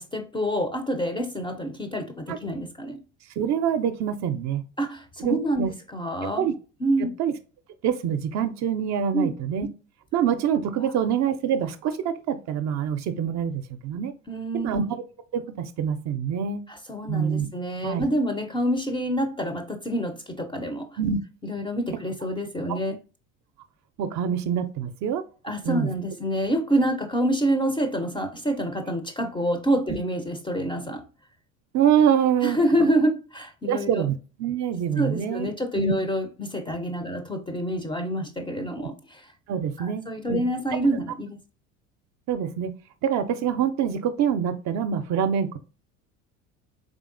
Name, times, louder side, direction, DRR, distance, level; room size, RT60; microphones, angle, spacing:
voice 1, 0.0-3.0 4.8-5.6 5.9-6.4 6.8-7.1 9.1-9.3 10.8-10.9 14.3-14.8 16.7-20.9 21.4-23.0 25.4-31.0 32.4-33.9 35.0-39.2 39.8-41.4, right 1 dB, 15° left, 0.4 m, -27 dB
voice 2, 3.4-4.6 5.2-5.7 6.4-6.5 7.2-7.3 7.8-9.7 10.1-14.1 14.6-14.8 15.3-16.6 17.1-17.5 17.8-18.1 21.0-21.2 24.0-25.2 25.6-25.9 31.7-32.6 33.6-35.5 35.8-35.9 39.5-40.0 40.3-40.4 42.3-42.7 43.0-45.6, right 8 dB, 45° right, 0.4 m, -25 dB
3.7 x 3.4 x 2.5 m
hypercardioid pair, 75°, 40 cm